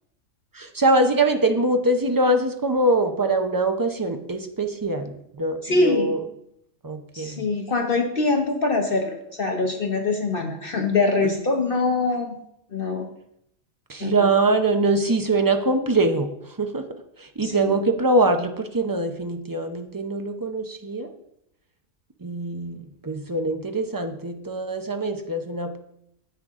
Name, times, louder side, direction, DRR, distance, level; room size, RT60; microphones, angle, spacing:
voice 1, 0.5-6.2 6.8-7.4 11.2-11.3 13.9-16.8 17.2-21.1 22.2-22.8 23.0-25.8, right 2 dB, 30° right, 6 dB, 0.4 m, -23 dB
voice 2, 5.6-6.2 7.1-12.4 12.7-13.1 14.0-14.3 17.4-17.7, left 3 dB, 45° left, 3 dB, 1.0 m, -24 dB
10.0 x 7.9 x 3.6 m, 0.76 s
omnidirectional pair, 1.4 m